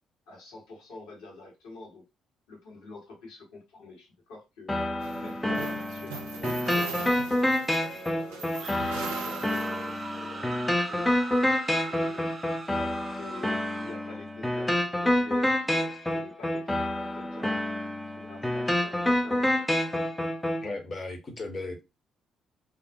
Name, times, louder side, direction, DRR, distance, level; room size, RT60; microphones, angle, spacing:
voice 1, 0.3-2.1 2.5-4.8 5.2-7.0 7.7-11.2 11.8-12.3 12.8-17.6 18.1-19.5, left 3 dB, 70° left, 1.2 m, -46 dB
sound 1, 4.7-20.7, left 1 dB, 10° left, 0.4 m, -28 dB
sound 2, 5.0-10.2, right 6 dB, 75° right, 0.4 m, -40 dB
sound 3, 8.4-14.2, right 3 dB, 35° right, 0.7 m, -40 dB
voice 2, 20.6-21.8, left 2 dB, 35° left, 0.8 m, -36 dB
2.5 x 2.0 x 2.6 m
figure-of-eight pair, 45°, 0 cm